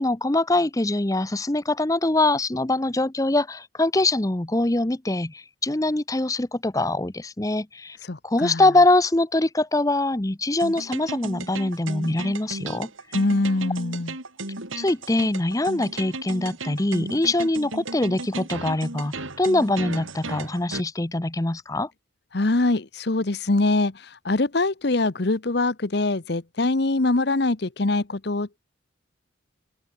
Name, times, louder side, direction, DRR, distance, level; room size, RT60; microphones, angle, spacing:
voice 1, 0.0-8.0 8.2-12.9 14.8-21.9, left 2 dB, 15° left, 0.7 m, -23 dB
voice 2, 8.0-8.6 13.1-14.1 22.3-28.6, left 2 dB, 55° left, 1.0 m, -23 dB
sound 1, 10.6-20.8, right 2 dB, 85° right, 5.1 m, -35 dB
open air
head